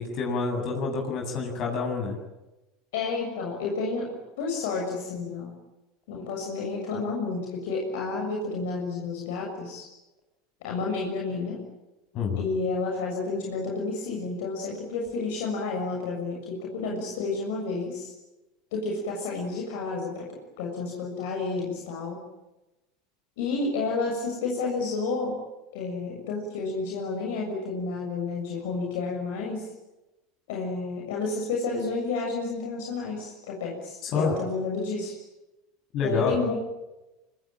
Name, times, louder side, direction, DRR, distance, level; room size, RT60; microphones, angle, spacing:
voice 1, 0.0-2.1 12.1-12.4 34.0-34.3 35.9-36.4, left 4 dB, 50° left, 2 dB, 7.6 m, -27 dB
voice 2, 2.9-5.6 6.1-9.9 10.6-11.6 12.3-18.1 18.7-22.2 23.4-25.4 25.7-29.7 30.5-35.2 36.0-36.6, left 3 dB, 70° left, 0 dB, 6.8 m, -30 dB
26.0 x 25.0 x 8.9 m, 1.0 s
hypercardioid pair, 80°, 0 cm